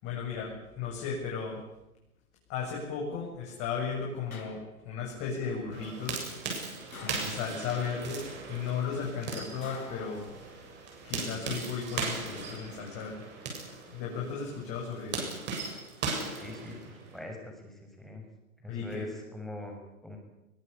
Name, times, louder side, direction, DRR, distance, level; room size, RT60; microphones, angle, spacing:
voice 1, 0.0-1.6 2.5-6.3 7.0-8.2 8.5-10.2 11.0-13.2 13.9-15.3 18.7-19.1, left 6 dB, 30° left, -2 dB, 7.9 m, -35 dB
sound 1, 4.3-5.1 6.9-7.9 9.6-10.8 12.1-12.7, left 4 dB, 75° left, 6.2 m, -48 dB
sound 2, 5.7-17.2, right 4 dB, 25° right, 7.7 m, -38 dB
voice 2, 16.3-18.2 18.6-20.2, left 2 dB, ahead, 2 dB, 6.6 m, -43 dB
22.5 x 21.5 x 8.7 m, 0.93 s
figure-of-eight pair, 120°, 43 cm